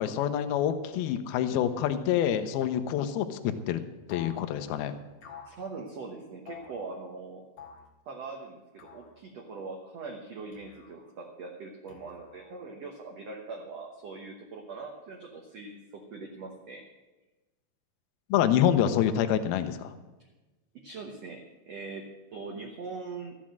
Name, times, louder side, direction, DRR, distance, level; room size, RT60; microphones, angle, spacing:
voice 1, 0.0-3.8 4.1-5.0 18.3-19.9, left 10 dB, 80° left, 8 dB, 2.6 m, -27 dB
sound 1, 4.1-4.4 5.2-5.6 6.5-6.8 7.6-7.9 8.8-9.1 10.5-11.0 11.9-12.6, left 7 dB, 55° left, 2.9 m, -48 dB
voice 2, 5.4-7.4 8.0-16.8 20.7-23.3, right 4 dB, 65° right, 1 dB, 1.6 m, -42 dB
14.0 x 7.3 x 7.6 m, 1.1 s
omnidirectional pair, 4.6 m